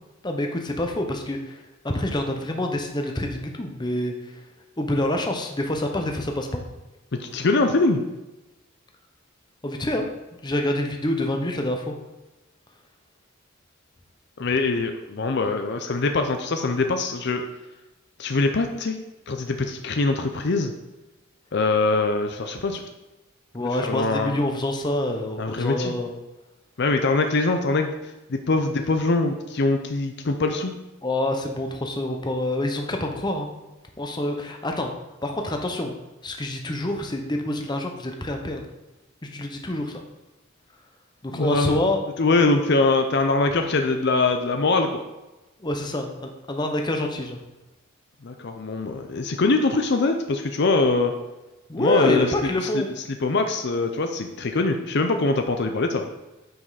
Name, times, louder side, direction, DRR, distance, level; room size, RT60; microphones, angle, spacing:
voice 1, 0.2-1.6 1.8-4.1 4.8-6.6 9.6-10.1 10.4-11.9 23.5-26.1 31.0-33.5 34.0-34.9 35.2-35.9 36.2-38.6 39.3-40.0 41.2-42.1 45.6-47.4 51.7-52.9, left 1 dB, 20° left, 3 dB, 0.8 m, -26 dB
voice 2, 7.2-8.0 14.4-17.4 18.2-19.0 19.3-20.7 21.5-22.8 23.6-24.4 25.4-25.9 26.8-27.9 28.3-30.7 41.3-41.8 42.2-45.0 48.2-51.1 51.8-52.8 53.2-56.1, left 3 dB, 55° left, 6 dB, 0.6 m, -23 dB
9.1 x 5.2 x 4.1 m, 1.0 s
head